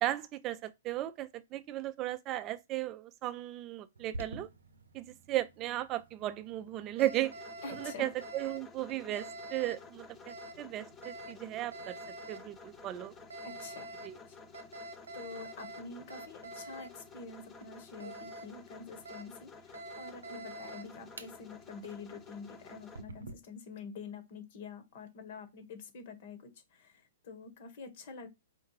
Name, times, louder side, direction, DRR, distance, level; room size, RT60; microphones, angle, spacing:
voice 1, 0.0-4.5 4.9-7.3 7.8-12.0 12.3-13.1 14.0-14.2, right 14 dB, 30° right, 0.4 m, -36 dB
Alarm, 4.0-23.3, right 2 dB, 85° right, 0.6 m, -48 dB
sound 1, 7.2-23.0, left 5 dB, 20° left, 0.8 m, -53 dB
voice 2, 7.6-8.1 13.4-14.0 14.3-14.6 15.1-28.3, left 4 dB, 55° left, 1.3 m, -47 dB
4.4 x 2.4 x 4.7 m
hypercardioid pair, 125°, 0 cm